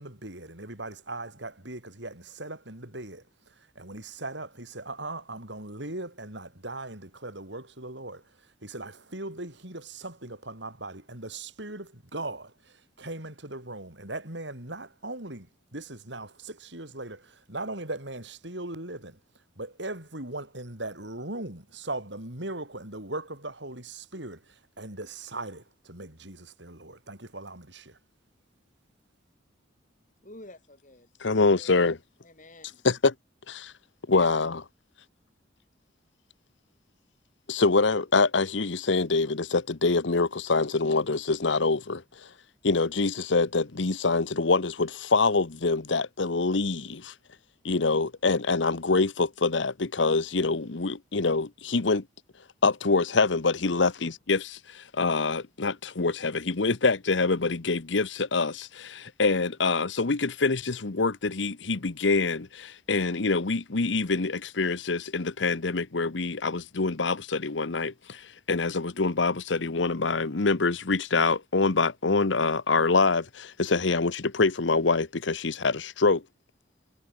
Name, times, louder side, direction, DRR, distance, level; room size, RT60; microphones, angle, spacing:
voice 1, 0.0-19.2 19.6-28.0, right 2 dB, 70° right, 7.3 m, -39 dB
voice 2, 30.2-31.7 32.2-32.9, left 1 dB, 45° left, 6.2 m, -50 dB
voice 3, 31.2-32.0 32.8-33.1 33.5-33.6 34.1-34.6 37.5-42.3 42.6-47.1 47.6-52.0 52.6-76.2, left 3 dB, 75° left, 1.0 m, -25 dB
head